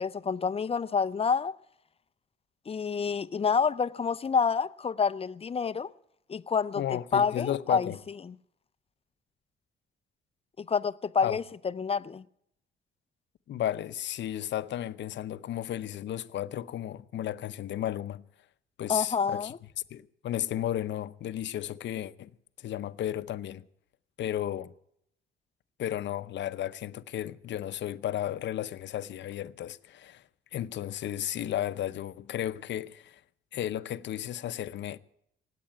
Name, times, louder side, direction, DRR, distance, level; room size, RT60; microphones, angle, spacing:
voice 1, 0.0-1.5 2.7-5.9 6.3-7.9 8.3-8.4 10.6-11.4 11.8-12.2 18.9-19.6, left 6 dB, 30° left, 0.6 m, -28 dB
voice 2, 6.8-8.0 11.2-11.4 13.5-18.2 18.8-19.5 19.9-22.3 22.6-23.6 24.2-24.7 25.8-30.2 30.5-33.2 33.5-35.0, left 11 dB, 65° left, 0.7 m, -33 dB
19.0 x 8.6 x 8.9 m
cardioid pair, 90°, 20 cm